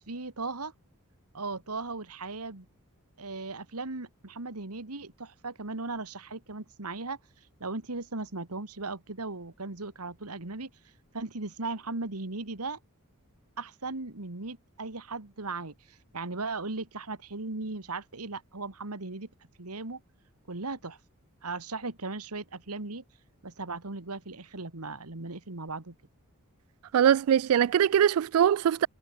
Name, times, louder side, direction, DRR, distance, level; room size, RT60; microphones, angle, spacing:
voice 1, 0.1-0.7 1.3-2.7 3.2-7.2 7.6-10.7 11.1-12.8 13.6-19.3 19.6-20.0 20.5-21.0 21.4-23.0 23.4-26.0, right 3 dB, 90° right, 2.1 m, -37 dB
voice 2, 26.9-28.9, right 9 dB, 65° right, 0.3 m, -22 dB
head